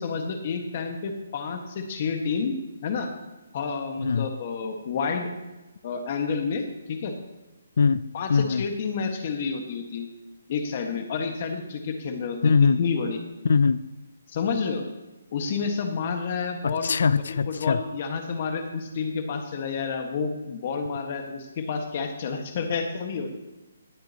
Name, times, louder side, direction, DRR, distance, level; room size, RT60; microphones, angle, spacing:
voice 1, 0.0-2.5 2.8-3.1 3.5-5.3 5.8-7.1 8.1-10.1 10.5-13.2 14.3-14.8 15.3-17.0 17.5-23.3, left 5 dB, 35° left, 4 dB, 1.5 m, -29 dB
voice 2, 4.0-4.3 7.8-8.7 12.4-12.8 13.4-13.8 16.6-17.8, left 5 dB, 60° left, 16 dB, 0.4 m, -22 dB
20.0 x 7.6 x 2.9 m, 1.1 s
hypercardioid pair, 170°, 0 cm